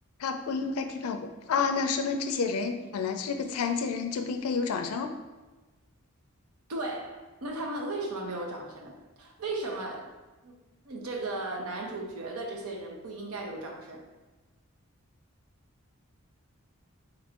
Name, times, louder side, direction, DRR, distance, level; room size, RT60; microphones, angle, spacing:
voice 1, 0.2-5.1, left 5 dB, 85° left, 7 dB, 0.4 m, -30 dB
voice 2, 6.7-10.1 10.4-10.6 10.8-14.0, right 2 dB, 90° right, 1 dB, 0.7 m, -36 dB
3.0 x 2.6 x 4.3 m, 1.2 s
head